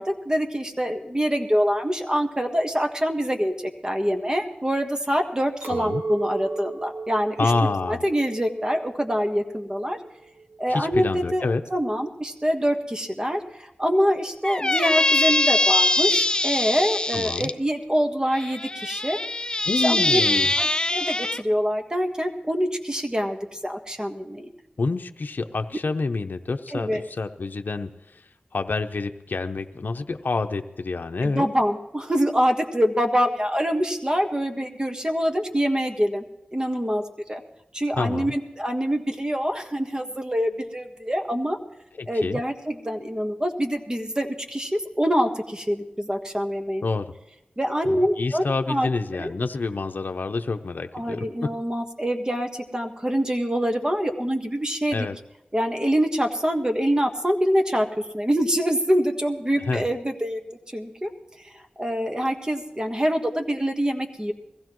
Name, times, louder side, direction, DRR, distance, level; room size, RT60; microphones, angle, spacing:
voice 1, 0.0-3.5 3.8-7.5 7.9-10.0 10.6-19.2 19.8-20.2 20.6-24.5 26.7-27.0 31.2-36.2 36.5-37.0 37.3-37.4 37.7-41.6 42.1-46.8 47.6-48.9 49.2-49.3 50.9-55.1 55.5-57.9 58.1-60.4 60.7-61.1 61.8-64.3, equal, 25° right, 4 dB, 1.5 m, -25 dB
Chink clink, 5.6-11.0, right 3 dB, 75° right, 1.8 m, -36 dB
voice 2, 5.7-6.0 7.4-8.0 10.7-11.6 17.1-17.5 19.7-20.5 24.8-28.2 28.5-31.5 38.0-38.3 42.0-42.4 46.8-47.1 47.9-51.5 54.9-55.1 59.7-59.9, left 3 dB, 70° left, 6 dB, 0.7 m, -27 dB
Squeak, 14.4-17.5 18.3-21.4, left 2 dB, 25° left, 0.6 m, -23 dB
21.5 x 15.5 x 3.1 m, 0.91 s
wide cardioid pair, 50°, 3 cm